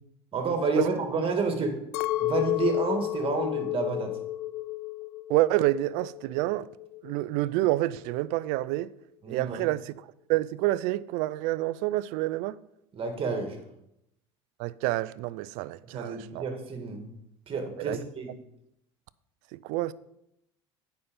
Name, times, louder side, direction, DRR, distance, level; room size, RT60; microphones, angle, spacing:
voice 1, 0.3-1.8 2.2-4.1 9.2-9.7 12.9-13.6 15.8-17.0 17.5-18.3, right 4 dB, 40° right, 2.0 m, -29 dB
Chink clink, 1.9-6.3 6.6-7.4, left 16 dB, 70° left, 0.4 m, -31 dB
voice 2, 5.3-6.7 7.0-8.9 9.3-9.9 10.3-12.6 14.6-16.4 17.9-18.0 19.5-19.9, right 17 dB, 65° right, 0.4 m, -28 dB
9.3 x 5.7 x 5.2 m
hypercardioid pair, 75°, 14 cm